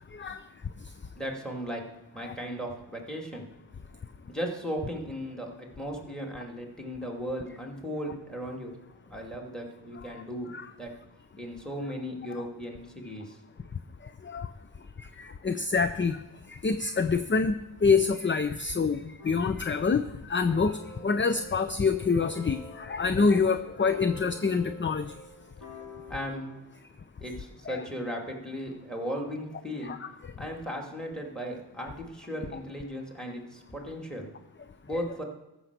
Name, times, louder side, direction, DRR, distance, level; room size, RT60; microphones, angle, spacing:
voice 1, 1.2-1.8 2.1-3.4 4.3-8.7 9.1-10.5 10.8-10.9 11.4-13.4 26.1-26.6 27.2-30.0 30.4-34.3 34.8-35.2, equal, ahead, 1 dB, 2.5 m, -36 dB
voice 2, 15.2-16.2 16.5-17.6 17.8-25.1 27.7-27.8 29.8-30.1, left 4 dB, 25° left, 10 dB, 0.5 m, -26 dB
sound 1, 19.2-19.8 20.5-26.7, left 2 dB, 45° left, 4.1 m, -47 dB
13.5 x 6.0 x 6.7 m, 0.96 s
wide cardioid pair, 60°, 48 cm